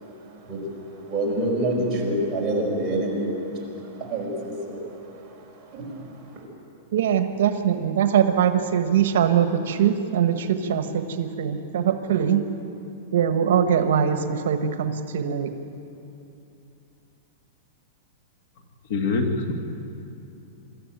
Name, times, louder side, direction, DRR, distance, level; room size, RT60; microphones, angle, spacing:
voice 1, 1.1-3.6 4.1-4.8 5.7-5.9, right 1 dB, 15° right, -5 dB, 5.0 m, -26 dB
voice 2, 6.9-12.4 13.1-15.5, right 8 dB, 70° right, 7 dB, 1.3 m, -22 dB
voice 3, 18.9-19.5, left 3 dB, 50° left, 4 dB, 2.1 m, -24 dB
24.5 x 13.5 x 9.2 m, 2.8 s
supercardioid pair, 170°, 0 cm